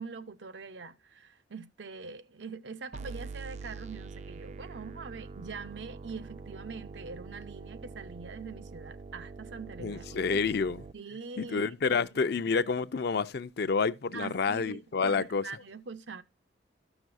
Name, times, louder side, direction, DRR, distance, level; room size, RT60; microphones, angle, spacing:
voice 1, 0.0-10.4 10.9-12.3 14.1-16.2, right 4 dB, 75° right, 0.6 m, -43 dB
sound 1, 2.9-10.9, right 4 dB, 40° right, 0.3 m, -44 dB
voice 2, 9.8-10.8 11.4-15.4, left 5 dB, 60° left, 0.5 m, -29 dB
13.0 x 6.0 x 2.5 m
head